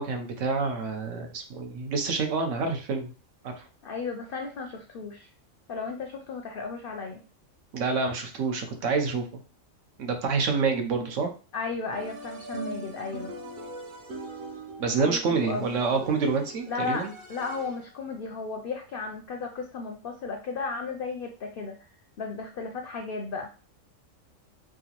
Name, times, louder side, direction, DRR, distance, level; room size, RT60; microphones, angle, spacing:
voice 1, 0.0-3.1 3.4-3.5 7.7-9.3 10.0-11.3 14.8-17.1, right 4 dB, 75° right, 4 dB, 1.1 m, -27 dB
voice 2, 3.8-5.3 5.7-7.2 11.5-13.3 15.0-15.8 16.7-21.8 22.2-23.5, left 4 dB, 65° left, 4 dB, 0.6 m, -34 dB
sound 1, 11.9-18.0, right 2 dB, 50° right, 0.6 m, -41 dB
4.6 x 2.0 x 2.9 m, 0.35 s
omnidirectional pair, 1.4 m